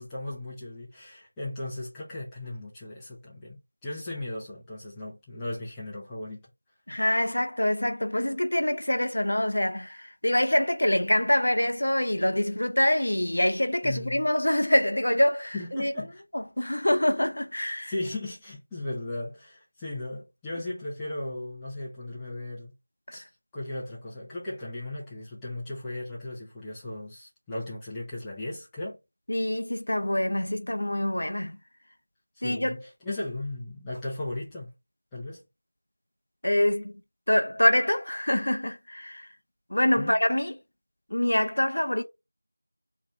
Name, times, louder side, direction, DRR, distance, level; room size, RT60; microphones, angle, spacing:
voice 1, 0.0-6.5 13.8-14.3 15.5-16.2 17.8-22.7 23.1-23.3 23.5-29.0 32.4-34.7 35.1-35.4 40.0-40.2, left 2 dB, 5° left, 0.4 m, -36 dB
voice 2, 6.9-15.9 16.6-17.9 23.1-23.2 29.3-31.6 32.4-32.8 36.4-36.9 37.3-39.3 39.7-40.6 41.1-42.0, left 1 dB, 55° left, 0.5 m, -25 dB
3.1 x 2.7 x 3.4 m
figure-of-eight pair, 180°, 0 cm